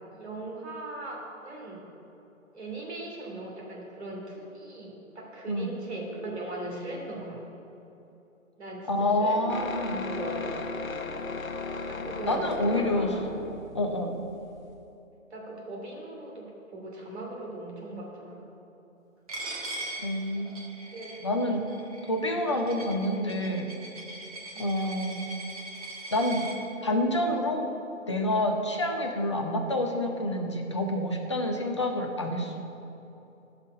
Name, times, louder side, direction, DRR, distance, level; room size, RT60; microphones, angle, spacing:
voice 1, 0.1-1.8 2.5-7.5 8.6-8.9 9.2-9.5 9.9-10.5 11.9-13.0 15.3-16.4 16.7-18.4 20.9-21.2 24.5-24.7, right 1 dB, 55° right, -2 dB, 2.9 m, -39 dB
voice 2, 8.9-10.1 12.3-13.1 13.7-14.1 20.0-20.6 21.2-21.6 22.0-23.7 24.6-25.2 26.1-26.5 26.8-27.6 28.1-32.5, left 1 dB, 20° left, 2 dB, 0.6 m, -28 dB
sound 1, 9.5-14.9, left 4 dB, 80° left, 0.8 m, -36 dB
Coin (dropping), 19.3-26.5, right 2 dB, 25° right, 1.2 m, -41 dB
16.0 x 5.8 x 5.2 m, 2.9 s
figure-of-eight pair, 145°, 41 cm